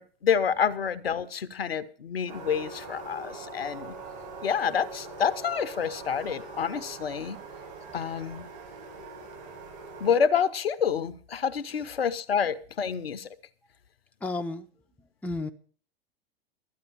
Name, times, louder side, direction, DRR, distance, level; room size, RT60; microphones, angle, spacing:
voice 1, 0.0-4.0 4.4-7.4 7.9-8.5 10.0-13.3, left 7 dB, 75° left, 14 dB, 0.8 m, -28 dB
sound 1, 2.3-10.1, right 3 dB, 55° right, 6.5 m, -42 dB
voice 2, 14.2-14.7 15.0-15.5, left 2 dB, 5° left, 5 dB, 0.6 m, -34 dB
12.5 x 9.4 x 5.4 m, 0.43 s
figure-of-eight pair, 95°, 30 cm